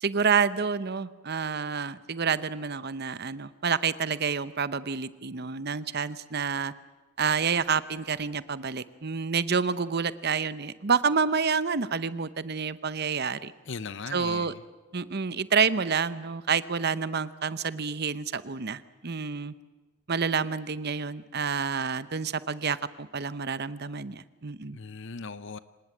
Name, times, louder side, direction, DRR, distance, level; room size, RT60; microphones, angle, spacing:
voice 1, 0.0-6.7 7.2-13.5 14.1-14.5 14.9-19.5 20.1-24.8, right 5 dB, 50° right, 15 dB, 0.8 m, -28 dB
voice 2, 13.7-14.6 24.7-25.6, left 4 dB, 55° left, 15 dB, 0.8 m, -38 dB
25.0 x 19.5 x 9.0 m, 1.2 s
head